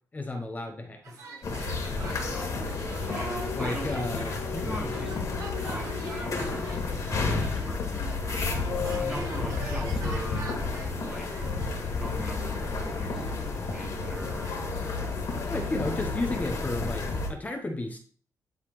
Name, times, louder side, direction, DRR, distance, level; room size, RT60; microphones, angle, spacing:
voice 1, 0.1-1.2 3.5-4.4 14.8-14.9 15.5-18.0, left 2 dB, 25° left, 1.0 m, -33 dB
sound 1, 1.0-16.6, right 3 dB, 60° right, 3.6 m, -45 dB
sound 2, 1.4-17.3, left 3 dB, 60° left, 2.5 m, -31 dB
voice 2, 2.2-2.6 3.1-4.1 4.5-10.6 11.0-11.5 12.0-15.2, right 1 dB, 10° right, 1.6 m, -41 dB
sound 3, 3.0-7.7 8.1-10.8, left 8 dB, 75° left, 0.8 m, -43 dB
11.5 x 4.0 x 3.2 m
cardioid pair, 125°, 7 cm